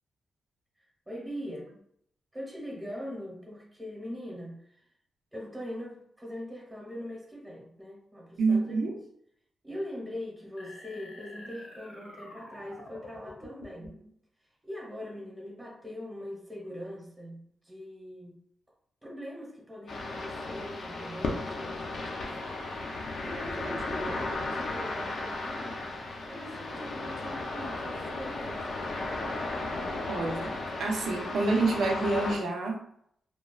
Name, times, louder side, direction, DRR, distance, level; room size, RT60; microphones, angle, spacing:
voice 1, 1.1-1.7 2.3-4.8 5.3-8.8 9.6-14.0 14.6-18.4 19.0-25.8 26.2-28.7, equal, 10° right, -6 dB, 0.9 m, -42 dB
voice 2, 8.4-8.9 30.1-32.8, right 3 dB, 75° right, 1 dB, 0.5 m, -28 dB
sound 1, 10.6-14.1, left 1 dB, 75° left, 0.8 m, -48 dB
sound 2, 19.9-32.4, left 2 dB, 55° left, 0.4 m, -35 dB
2.8 x 2.3 x 2.3 m, 0.70 s
wide cardioid pair, 155°, 0 cm